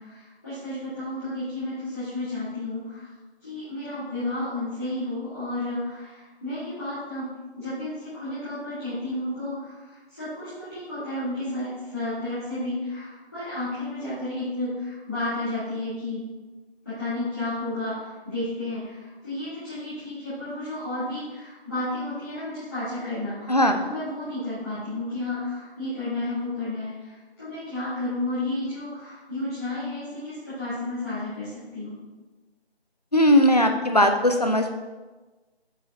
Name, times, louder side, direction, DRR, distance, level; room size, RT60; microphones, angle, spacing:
voice 1, 0.0-3.1 3.4-7.3 7.6-16.2 16.8-32.0, left 2 dB, 15° left, -18 dB, 1.5 m, -32 dB
voice 2, 23.5-23.8 33.1-34.7, left 1 dB, 40° left, 5 dB, 0.5 m, -19 dB
8.1 x 5.4 x 2.7 m, 1.2 s
figure-of-eight pair, 175°, 32 cm